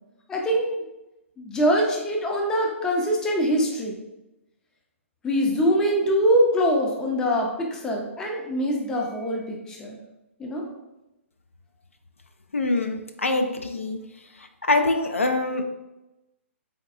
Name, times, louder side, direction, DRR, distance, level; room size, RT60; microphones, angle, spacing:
voice 1, 0.3-0.8 1.4-4.0 5.2-10.0 10.4-10.7, equal, 10° left, 0 dB, 0.5 m, -23 dB
voice 2, 12.5-14.0 14.7-15.6, left 2 dB, 70° left, 5 dB, 0.4 m, -24 dB
3.9 x 3.5 x 2.4 m, 0.97 s
figure-of-eight pair, 125°, 7 cm